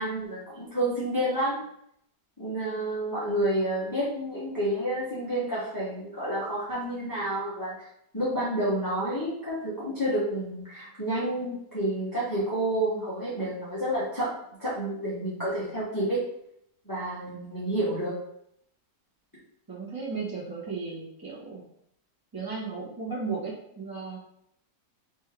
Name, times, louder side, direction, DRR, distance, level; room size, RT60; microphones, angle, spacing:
voice 1, 0.0-1.6 2.4-7.7 8.1-14.3 14.6-16.2 16.8-18.1, right 1 dB, 15° left, -10 dB, 1.3 m, -29 dB
voice 2, 19.7-21.6 22.3-24.2, right 4 dB, 15° right, -6 dB, 1.3 m, -35 dB
4.4 x 3.1 x 3.5 m, 0.74 s
omnidirectional pair, 1.8 m